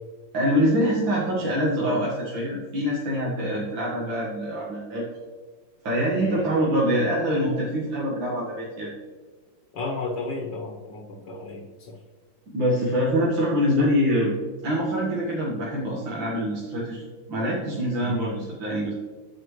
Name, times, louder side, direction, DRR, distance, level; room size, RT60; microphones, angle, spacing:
voice 1, 0.3-5.1 5.8-8.9 12.5-14.3 14.6-18.9, equal, 75° right, -5 dB, 2.2 m, -25 dB
voice 2, 6.2-6.5 9.7-12.0 18.0-18.5, left 2 dB, 65° left, 0 dB, 1.8 m, -34 dB
11.0 x 8.2 x 3.2 m, 1.4 s
omnidirectional pair, 2.1 m